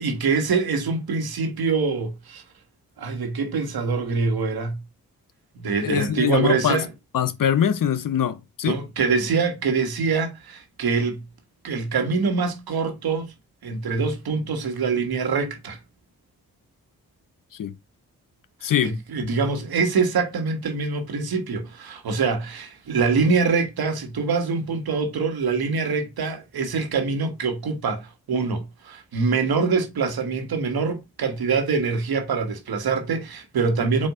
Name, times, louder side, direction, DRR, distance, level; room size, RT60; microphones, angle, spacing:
voice 1, 0.0-2.4 3.0-4.8 5.5-6.9 8.6-11.2 11.6-13.3 13.6-15.8 18.8-34.1, right 4 dB, 75° right, 1.4 m, -24 dB
voice 2, 5.8-6.8 7.1-8.8 17.6-17.7 18.6-18.9, left 9 dB, 60° left, 0.7 m, -23 dB
4.1 x 2.7 x 4.8 m
supercardioid pair, 45°, 37 cm